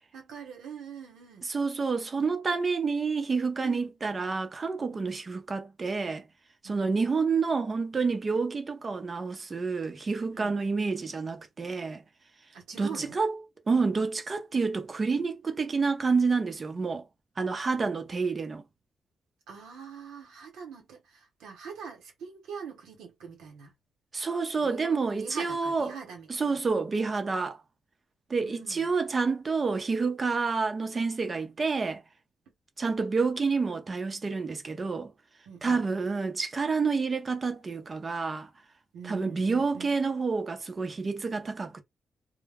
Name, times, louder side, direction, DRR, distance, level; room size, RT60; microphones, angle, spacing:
voice 1, 0.1-1.5 3.6-3.9 4.9-5.1 6.6-6.9 10.3-10.6 12.5-13.2 19.5-23.7 24.6-26.6 28.4-28.9 35.5-35.8 38.9-40.0, right 6 dB, 90° right, 1.0 m, -44 dB
voice 2, 1.4-6.2 6.6-12.0 12.8-13.4 13.7-17.0 17.4-18.6 24.1-25.9 26.3-27.6 28.3-32.0 32.8-35.1 35.6-38.5 39.0-41.8, right 4 dB, 40° right, 0.6 m, -28 dB
2.1 x 2.1 x 3.4 m
supercardioid pair, 60°, 0 cm